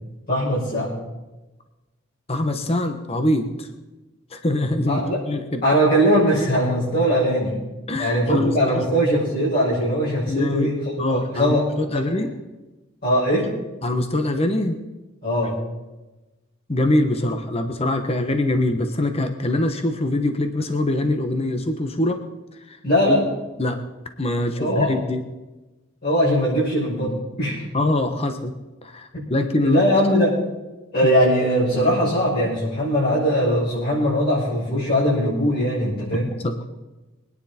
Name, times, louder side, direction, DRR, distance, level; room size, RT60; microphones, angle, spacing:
voice 1, 0.3-0.9 4.9-5.2 5.6-7.5 8.0-11.7 11.9-12.0 13.0-13.5 15.2-15.6 22.8-23.2 24.6-24.9 26.0-27.6 29.1-29.3 29.6-30.4 30.9-36.3, equal, 45° left, -10 dB, 6.2 m, -20 dB
voice 2, 2.3-3.7 4.3-5.6 7.9-8.9 10.3-10.7 11.0-12.3 13.8-14.8 16.7-22.2 22.5-22.8 23.1-23.2 23.6-23.8 24.2-25.2 27.7-28.5 28.8-29.8 36.4-36.7, left 1 dB, 30° left, 7 dB, 1.1 m, -23 dB
24.0 x 10.0 x 4.4 m, 1.1 s
head